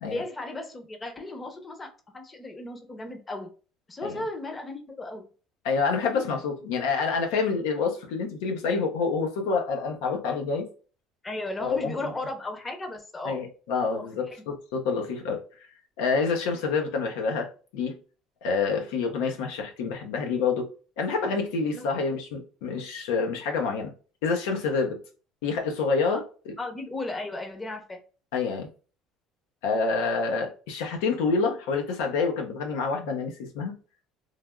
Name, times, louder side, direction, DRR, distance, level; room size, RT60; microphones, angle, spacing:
voice 1, 0.0-3.5 3.9-5.2 11.2-13.4 13.9-14.1 21.7-21.9 26.0-26.2 26.6-28.0, left 2 dB, 20° left, 0.7 m, -35 dB
voice 2, 5.6-10.7 11.6-12.0 13.2-15.4 16.0-18.0 18.4-20.7 21.0-23.9 24.2-25.0 25.4-26.5 28.3-28.7 29.6-33.8, left 4 dB, 90° left, 0.7 m, -27 dB
3.3 x 2.3 x 2.3 m
supercardioid pair, 105°, 0 cm